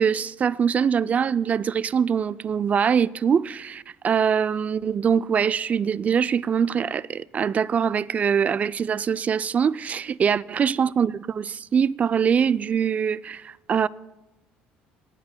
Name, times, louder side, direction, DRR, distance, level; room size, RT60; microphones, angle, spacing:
voice 1, 0.0-13.9, right 7 dB, 35° right, 0.3 m, -23 dB
26.0 x 10.5 x 2.2 m
supercardioid pair, 90°, 4 cm